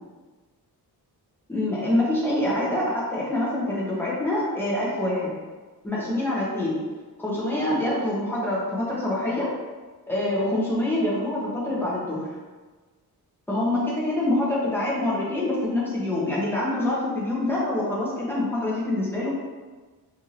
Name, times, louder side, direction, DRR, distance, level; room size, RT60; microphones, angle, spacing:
voice 1, 1.5-5.3 5.8-6.8 7.2-9.5 10.1-12.3 13.5-19.3, left 1 dB, 5° left, -6 dB, 0.8 m, -25 dB
4.5 x 2.6 x 2.9 m, 1.3 s
wide cardioid pair, 170°, 39 cm